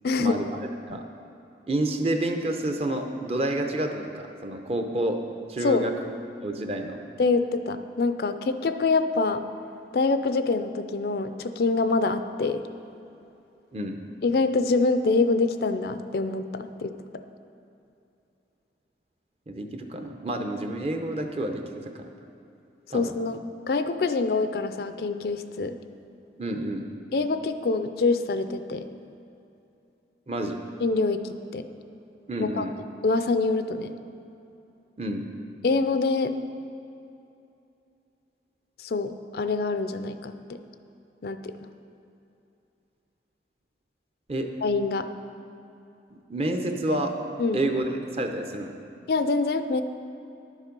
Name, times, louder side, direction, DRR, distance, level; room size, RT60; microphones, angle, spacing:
voice 1, 0.0-0.4 5.6-5.8 7.2-9.5 9.9-12.6 14.2-16.9 22.9-25.8 27.1-28.9 30.8-31.7 32.4-32.6 33.0-33.9 35.6-36.3 38.8-40.6 41.2-41.5 44.6-45.1 47.4-47.6 49.1-49.8, left 3 dB, 60° left, 10 dB, 0.4 m, -25 dB
voice 2, 1.7-5.2 5.5-5.9 6.4-7.0 13.7-14.0 19.5-22.1 22.9-23.1 26.4-26.8 30.3-30.6 32.3-32.7 35.0-35.3 44.3-44.5 46.1-47.1 47.5-47.9 48.2-48.7, right 1 dB, 35° right, 5 dB, 0.7 m, -29 dB
11.0 x 7.2 x 5.3 m, 2.8 s
head